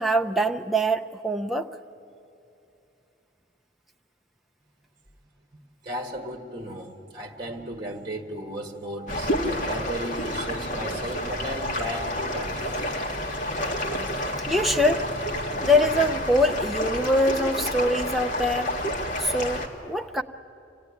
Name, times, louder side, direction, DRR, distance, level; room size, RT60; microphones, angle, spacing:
voice 1, 0.0-1.7 14.5-15.1 15.6-18.7 19.2-20.2, equal, ahead, 2 dB, 0.5 m, -23 dB
voice 2, 5.8-12.8, equal, 25° right, 3 dB, 1.5 m, -35 dB
sound 1, 9.1-19.7, equal, 40° left, 1.7 m, -29 dB
25.5 x 16.5 x 9.7 m, 2.7 s
head